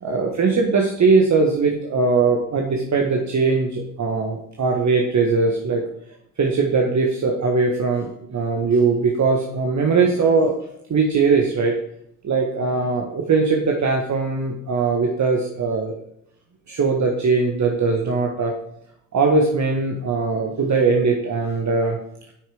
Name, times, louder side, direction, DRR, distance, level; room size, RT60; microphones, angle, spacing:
voice 1, 0.0-5.8 6.4-10.5 10.9-11.8 12.2-16.0 16.7-18.5 19.1-22.0, right 4 dB, 35° right, 1 dB, 1.5 m, -20 dB
8.5 x 6.4 x 4.9 m, 0.75 s
hypercardioid pair, 55°, 46 cm